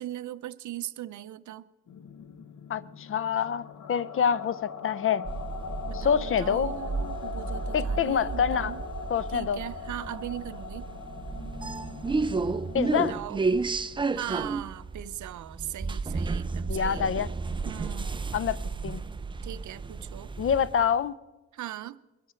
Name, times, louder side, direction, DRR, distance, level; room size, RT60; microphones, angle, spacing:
voice 1, 0.0-1.7 5.9-8.8 9.3-10.9 13.1-13.4 14.1-17.1 17.7-18.2 19.4-20.3 21.5-22.0, right 13 dB, 70° right, 0.6 m, -39 dB
sound 1, 1.9-13.2, left 6 dB, 70° left, 1.0 m, -41 dB
voice 2, 2.7-5.2 5.9-6.7 7.7-8.7 9.1-9.6 12.7-13.2 16.7-17.3 18.3-18.6 18.8-19.0 20.4-21.2, left 7 dB, 45° left, 0.5 m, -26 dB
sound 2, 5.3-20.9, right 4 dB, 15° right, 0.4 m, -32 dB
22.0 x 12.5 x 4.4 m
cardioid pair, 125°, 31 cm